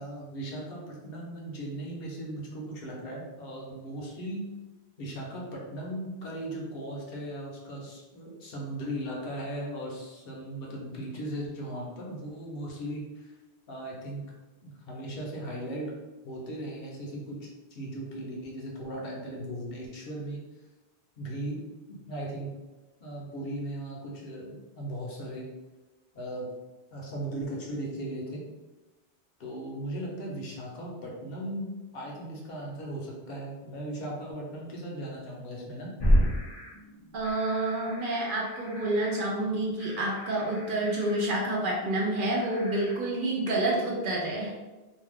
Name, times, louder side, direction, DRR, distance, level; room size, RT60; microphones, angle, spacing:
voice 1, 0.0-4.4 5.0-13.3 13.7-14.2 14.6-15.9 16.2-20.4 21.2-21.6 21.9-22.5 23.0-25.5 26.1-26.5 26.9-28.4 29.4-35.9, right 1 dB, 60° left, -2 dB, 0.9 m, -37 dB
sound 1, 36.0-43.0, equal, 40° left, 0.3 m, -32 dB
voice 2, 37.1-44.5, right 1 dB, 60° right, -2 dB, 0.7 m, -28 dB
2.6 x 2.2 x 3.4 m, 1.2 s
omnidirectional pair, 1.1 m